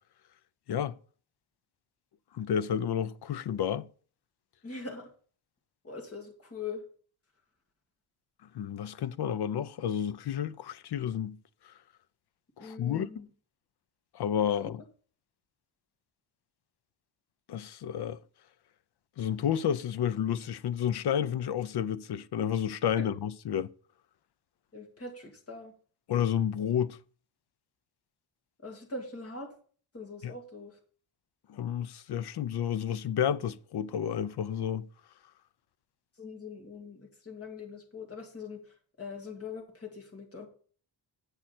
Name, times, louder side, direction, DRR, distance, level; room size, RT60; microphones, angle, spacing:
voice 1, 2.3-3.9 8.5-11.4 12.6-13.1 14.1-14.8 17.5-18.2 19.2-23.7 26.1-27.0 30.2-30.3 31.5-34.9, left 9 dB, 60° left, 0.6 m, -30 dB
voice 2, 4.6-5.1 5.8-6.8 12.6-13.3 23.0-23.1 24.7-25.7 28.6-29.5 29.9-30.8 36.2-40.5, left 4 dB, 30° left, 2.1 m, -42 dB
8.7 x 7.6 x 4.3 m
wide cardioid pair, 160°, 47 cm